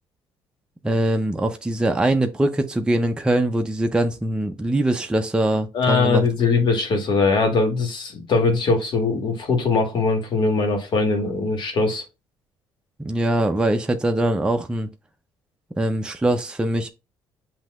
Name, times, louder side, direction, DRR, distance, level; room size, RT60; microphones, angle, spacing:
voice 1, 0.8-6.5 13.0-14.9 15.8-16.9, right 1 dB, 10° right, 0.5 m, -22 dB
voice 2, 5.7-12.0, left 3 dB, 55° left, 1.6 m, -21 dB
7.5 x 2.8 x 2.4 m
supercardioid pair, 80°, 9 cm